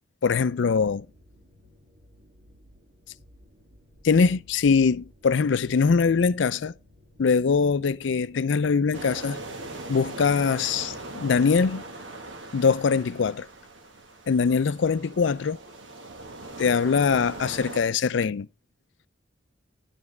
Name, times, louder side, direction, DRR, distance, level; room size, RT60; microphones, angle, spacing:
voice 1, 0.2-1.1 4.0-6.7 7.2-9.4 9.9-11.8 12.5-13.5 14.3-15.6 16.6-18.5, left 5 dB, 80° left, 0.4 m, -22 dB
sound 1, 0.7-9.1, equal, 55° right, 2.3 m, -56 dB
sound 2, 8.9-17.8, right 2 dB, 90° right, 1.5 m, -40 dB
10.5 x 7.2 x 3.3 m
head